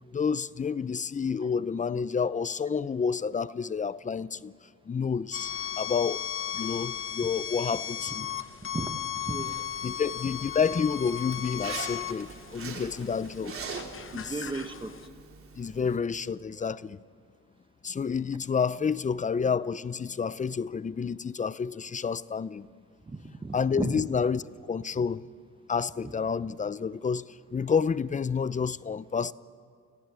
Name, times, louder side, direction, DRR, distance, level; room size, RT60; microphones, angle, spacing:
voice 1, 0.1-4.5 4.9-6.2 6.5-8.3 9.8-13.5 14.1-14.3 15.6-17.0 17.8-22.7 23.5-24.4 24.7-25.3 25.7-29.3, left 6 dB, 25° left, 0.6 m, -29 dB
sound 1, 5.3-15.1, left 10 dB, 45° left, 0.9 m, -36 dB
voice 2, 8.7-9.6 14.1-14.9 23.1-24.1, right 3 dB, 15° right, 1.4 m, -35 dB
Zipper (clothing), 9.3-16.0, right 5 dB, 45° right, 3.5 m, -43 dB
30.0 x 15.0 x 8.2 m
cardioid pair, 90°, 30 cm